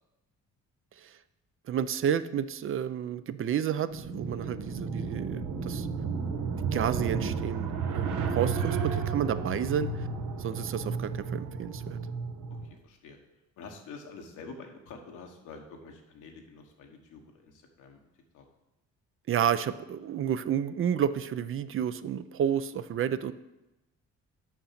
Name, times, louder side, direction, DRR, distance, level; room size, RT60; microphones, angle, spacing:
voice 1, 1.7-5.9 6.6-10.1 10.4-12.0 19.3-23.3, right 9 dB, 45° right, 14 dB, 0.4 m, -31 dB
sound 1, 3.9-12.7, right 5 dB, 85° right, 0.9 m, -32 dB
voice 2, 12.5-13.2 13.6-18.0 18.3-18.4, left 4 dB, 85° left, 2 dB, 1.3 m, -47 dB
6.5 x 5.7 x 5.8 m, 0.96 s
cardioid pair, 90°, 30 cm